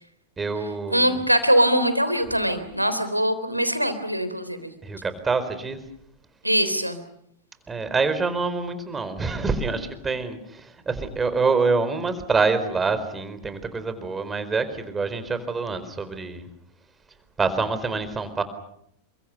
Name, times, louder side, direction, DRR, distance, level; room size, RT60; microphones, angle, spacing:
voice 1, 0.4-1.2 4.8-5.8 7.7-16.5 17.4-18.4, right 4 dB, 15° right, 11 dB, 4.4 m, -26 dB
voice 2, 0.9-4.7 6.4-7.0, equal, 90° right, 11 dB, 3.5 m, -22 dB
29.5 x 24.0 x 6.8 m, 0.74 s
figure-of-eight pair, 90°, 0 cm